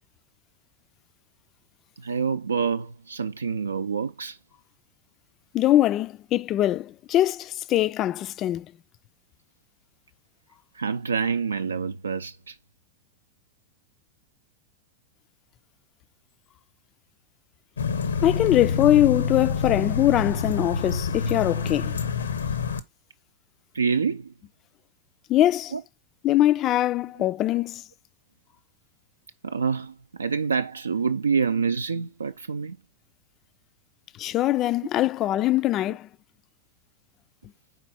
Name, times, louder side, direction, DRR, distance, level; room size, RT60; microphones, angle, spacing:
voice 1, 2.0-4.4 10.7-12.6 23.7-24.3 25.7-25.8 29.4-32.8, right 5 dB, 75° right, 0.3 m, -27 dB
voice 2, 5.5-8.7 18.2-22.0 25.3-25.7 26.2-27.8 34.2-36.1, left 13 dB, 35° left, 0.3 m, -22 dB
sound 1, 17.8-22.8, left 5 dB, 70° left, 0.6 m, -27 dB
4.9 x 4.1 x 5.4 m
figure-of-eight pair, 90°, 0 cm